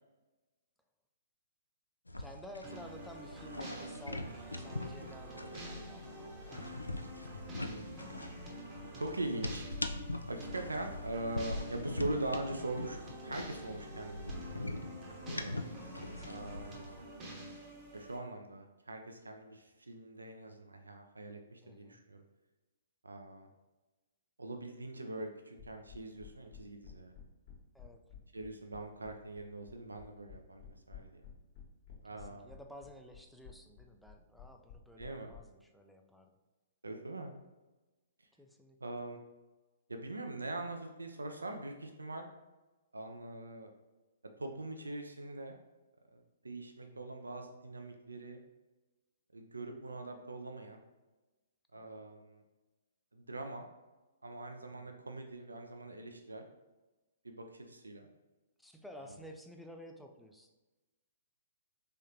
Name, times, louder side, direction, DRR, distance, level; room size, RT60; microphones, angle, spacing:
sound 1, 2.1-17.0, left 2 dB, 85° left, 0.3 m, -43 dB
voice 1, 2.2-6.6 16.1-16.7 21.6-22.0 27.7-28.0 32.1-36.4 38.4-38.8 46.9-47.2 51.8-52.0 54.7-55.0 58.6-60.5, equal, ahead, 3 dB, 0.4 m, -53 dB
sound 2, 2.6-18.2, right 1 dB, 20° right, 0.8 m, -48 dB
voice 2, 7.6-8.1 9.0-9.7 10.3-14.8 15.3-15.6 16.2-16.9 17.9-22.2 23.0-23.5 24.4-27.1 28.3-31.2 32.0-32.5 35.0-35.3 36.8-37.3 38.8-39.2 39.9-42.2 42.9-43.7 44.4-45.5 46.1-48.4 49.3-50.8 51.7-52.4 53.1-53.7 54.2-56.5 57.2-58.1 59.1-59.2, right 2 dB, 75° right, 4 dB, 0.4 m, -42 dB
sound 3, 25.6-35.4, left 9 dB, 40° left, 1.2 m, -53 dB
3.6 x 3.4 x 2.8 m, 1.1 s
figure-of-eight pair, 115°, 0 cm